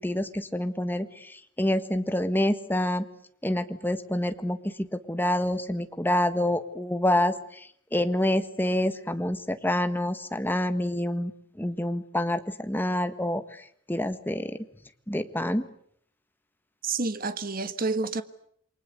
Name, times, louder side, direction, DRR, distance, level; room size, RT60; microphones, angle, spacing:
voice 1, 0.0-3.0 3.4-11.3 11.6-14.6 15.1-15.7, left 1 dB, 10° left, 1.5 m, -27 dB
voice 2, 16.8-18.2, right 3 dB, 45° right, 1.5 m, -29 dB
28.5 x 23.5 x 8.2 m
head